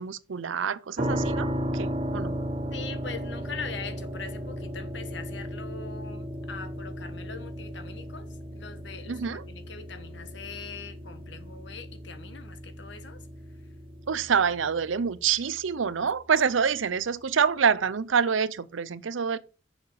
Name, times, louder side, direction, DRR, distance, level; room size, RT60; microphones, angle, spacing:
voice 1, 0.0-1.5 1.7-2.3 9.1-9.4 14.1-19.4, right 6 dB, 85° right, 0.6 m, -26 dB
sound 1, 1.0-15.8, equal, 30° right, 1.4 m, -35 dB
voice 2, 2.7-13.3, left 5 dB, 70° left, 1.3 m, -42 dB
7.2 x 6.6 x 4.8 m
head